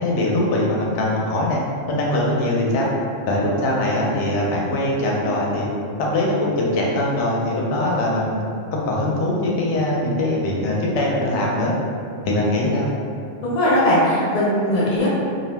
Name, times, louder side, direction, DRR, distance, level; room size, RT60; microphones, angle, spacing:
voice 1, 0.0-1.6 1.9-2.9 3.3-5.7 6.0-8.4 8.7-11.7 12.2-12.9, left 1 dB, 70° left, -3 dB, 0.8 m, -21 dB
voice 2, 13.4-15.1, left 1 dB, 40° left, -8 dB, 0.7 m, -19 dB
2.5 x 2.0 x 3.2 m, 2.4 s
omnidirectional pair, 1.3 m